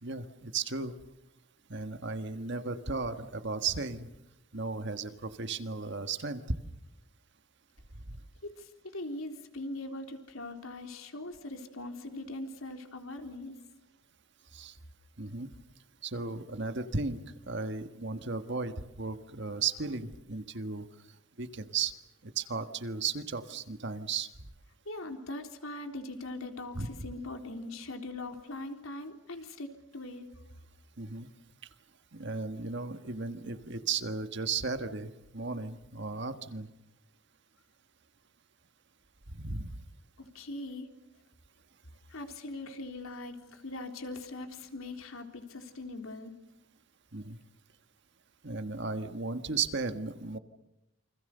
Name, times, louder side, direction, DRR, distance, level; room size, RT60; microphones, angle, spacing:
voice 1, 0.0-1.0 1.7-4.1 4.5-6.4 8.1-8.2 14.5-14.8 15.2-15.5 16.0-17.2 17.5-20.8 21.4-21.9 22.2-24.3 26.7-26.9 31.0-31.3 32.1-36.7 39.3-39.8 47.1-47.4 48.4-50.4, right 4 dB, 50° right, 9 dB, 1.5 m, -35 dB
voice 2, 8.4-13.6 24.9-30.3 36.2-36.3 40.2-40.9 42.1-46.3, left 2 dB, 70° left, 5 dB, 3.7 m, -41 dB
29.0 x 26.0 x 6.8 m, 0.89 s
head